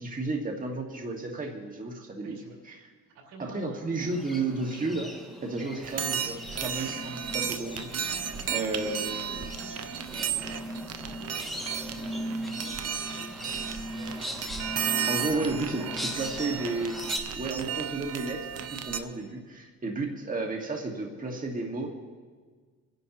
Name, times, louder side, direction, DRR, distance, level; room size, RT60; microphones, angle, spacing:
voice 1, 0.0-2.4 2.6-2.7 3.4-5.1 5.4-7.9 8.5-9.2 15.1-15.8 16.1-17.0 17.4-21.9, right 3 dB, 25° right, 1 dB, 1.7 m, -32 dB
voice 2, 2.2-2.6 3.0-3.8 4.3-4.5 8.0-9.9 10.5-14.4 14.8-16.5, right 2 dB, 85° right, 0 dB, 3.7 m, -50 dB
sound 1, 4.0-17.2, equal, ahead, 2.1 m, -39 dB
sound 2, 5.8-19.0, right 8 dB, 55° right, 0.9 m, -34 dB
sound 3, 6.2-19.3, left 9 dB, 75° left, 2.4 m, -58 dB
26.5 x 11.0 x 3.0 m, 1.5 s
cardioid pair, 90°, 30 cm